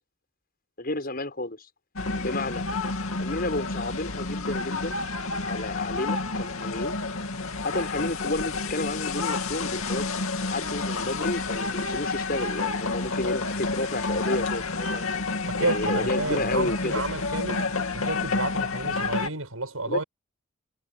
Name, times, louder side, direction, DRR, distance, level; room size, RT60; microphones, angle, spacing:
voice 1, 0.8-1.7 2.2-2.6 3.2-5.0 5.4-7.0 7.6-15.0 15.6-17.0 19.9-20.0, left 2 dB, 45° left, 6.2 m, -31 dB
sound 1, 2.0-19.3, left 3 dB, 90° left, 2.6 m, -29 dB
voice 2, 15.4-17.6 17.9-20.0, right 2 dB, 90° right, 6.8 m, -31 dB
head